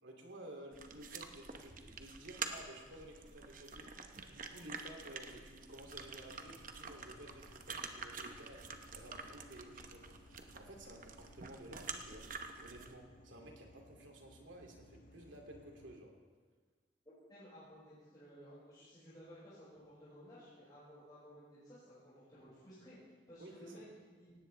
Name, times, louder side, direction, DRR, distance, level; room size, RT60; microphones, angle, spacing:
voice 1, 0.0-3.9 4.3-8.6 8.9-10.1 10.5-12.2 12.6-16.1 23.4-23.8, right 1 dB, 75° right, 1 dB, 2.7 m, -53 dB
sound 1, 0.7-12.9, right 5 dB, 45° right, 0.9 m, -48 dB
sound 2, 5.7-16.0, left 1 dB, 40° left, 0.6 m, -62 dB
voice 2, 17.3-23.0 23.3-24.3, equal, 20° left, -11 dB, 5.6 m, -56 dB
18.0 x 17.0 x 3.4 m, 1.4 s
head